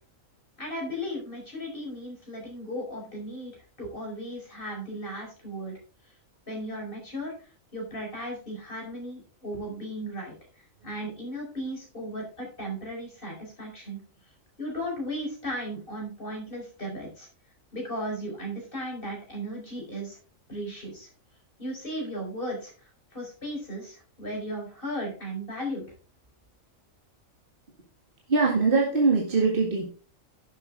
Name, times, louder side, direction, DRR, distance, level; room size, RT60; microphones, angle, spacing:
voice 1, 0.6-5.8 6.5-7.3 7.7-10.3 10.8-14.0 14.6-17.3 17.7-20.2 20.5-21.1 21.6-25.9, equal, 40° left, -1 dB, 4.9 m, -36 dB
voice 2, 28.3-29.9, right 4 dB, 40° right, -1 dB, 2.0 m, -22 dB
11.0 x 7.8 x 3.7 m, 0.37 s
omnidirectional pair, 1.4 m